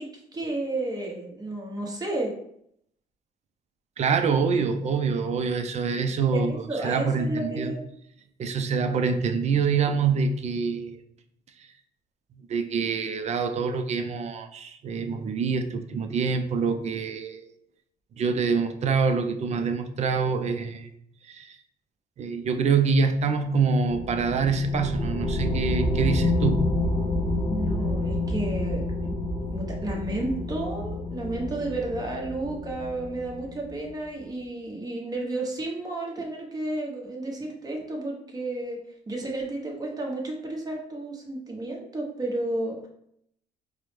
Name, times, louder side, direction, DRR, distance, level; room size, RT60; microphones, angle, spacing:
voice 1, 0.0-2.3 6.3-7.9 27.5-29.1 29.5-38.8 39.1-42.9, right 2 dB, 20° right, -1 dB, 1.0 m, -32 dB
voice 2, 4.0-6.5 6.8-7.7 8.4-11.0 12.5-17.5 18.2-20.9 21.3-21.6 22.2-26.7, right 5 dB, 40° right, 7 dB, 0.4 m, -25 dB
sound 1, 23.9-33.9, left 2 dB, 20° left, 0.5 m, -28 dB
4.5 x 2.1 x 3.3 m, 0.72 s
cardioid pair, 110°, 17 cm